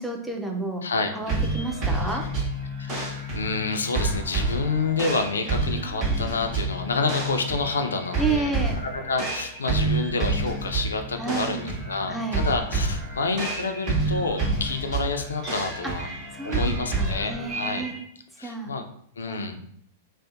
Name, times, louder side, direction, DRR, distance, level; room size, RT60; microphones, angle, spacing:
voice 1, 0.0-0.8 1.1-2.3 8.2-8.8 11.2-11.7 12.1-12.5 15.8-17.9 18.4-18.7 19.3-19.4, right 3 dB, 5° right, 1 dB, 0.5 m, -31 dB
voice 2, 0.8-1.1 2.8-8.5 8.8-16.1 16.4-17.9 18.4-18.8 19.2-19.6, left 4 dB, 80° left, 6 dB, 0.3 m, -28 dB
sound 1, 1.3-18.0, right 2 dB, 40° right, 1.0 m, -29 dB
2.6 x 2.0 x 2.5 m, 0.69 s
figure-of-eight pair, 100°, 0 cm